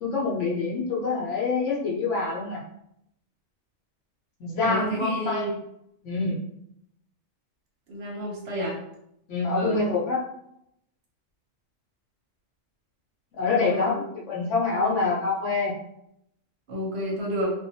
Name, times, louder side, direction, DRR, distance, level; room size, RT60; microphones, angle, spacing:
voice 1, 0.0-2.6 4.4-5.5 6.0-6.4 9.3-10.2 13.3-15.7, left 3 dB, 70° left, -4 dB, 1.0 m, -26 dB
voice 2, 4.6-5.5 7.9-8.8 9.5-9.8 13.4-14.0 14.7-15.1 16.7-17.5, equal, 60° right, -2 dB, 0.8 m, -31 dB
2.5 x 2.2 x 2.7 m, 0.77 s
omnidirectional pair, 1.3 m